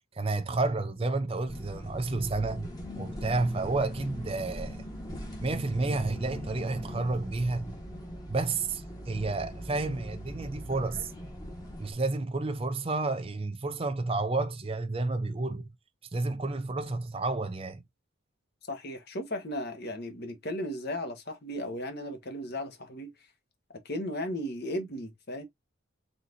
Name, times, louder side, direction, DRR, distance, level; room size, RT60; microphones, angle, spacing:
voice 1, 0.1-4.9 5.4-7.7 8.3-11.1 11.8-15.7 16.1-17.8, right 3 dB, 25° right, 0.5 m, -31 dB
sound 1, 1.5-11.9, equal, 20° left, 1.3 m, -41 dB
voice 2, 18.7-23.1 23.8-25.4, left 1 dB, 50° left, 1.3 m, -35 dB
4.2 x 3.9 x 2.6 m
head